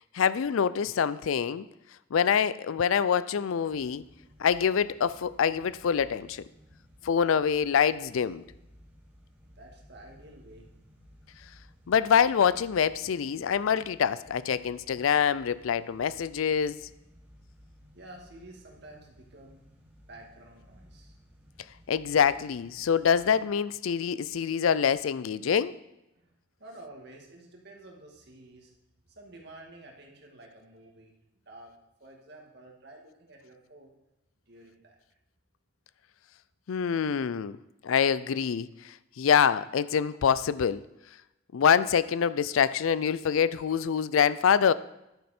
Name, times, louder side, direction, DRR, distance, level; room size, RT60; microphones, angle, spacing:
voice 1, 0.1-1.7 2.1-4.0 4.4-6.4 7.0-8.4 11.9-16.8 21.9-25.7 36.7-37.6 37.8-40.8 41.5-44.7, left 7 dB, 80° left, 17 dB, 0.4 m, -25 dB
sound 1, 3.6-23.4, equal, 10° right, 2.8 m, -57 dB
voice 2, 9.4-10.7 17.9-19.6 20.1-21.2 26.1-28.7 29.1-31.2 31.5-31.7 32.0-33.9 34.5-35.0, right 1 dB, 55° right, 0 dB, 2.1 m, -50 dB
10.5 x 9.7 x 4.4 m, 0.91 s
head